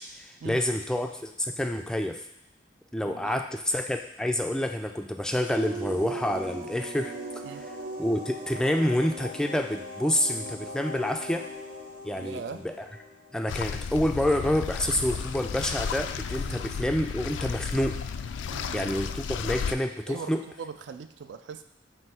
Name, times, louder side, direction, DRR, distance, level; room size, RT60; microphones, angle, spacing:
voice 1, 0.0-2.2 2.9-7.1 8.0-11.5 12.0-12.7 13.3-18.0 18.7-20.4, left 1 dB, 5° left, 5 dB, 0.3 m, -28 dB
voice 2, 3.0-3.4 7.4-7.6 12.2-12.6 16.5-16.7 18.5-18.9 20.1-21.6, right 5 dB, 70° right, 9 dB, 0.4 m, -40 dB
sound 1, 5.5-13.8, right 1 dB, 45° right, 1.0 m, -39 dB
sound 2, 13.5-19.7, left 6 dB, 80° left, 0.3 m, -33 dB
7.7 x 2.6 x 5.6 m, 0.79 s
head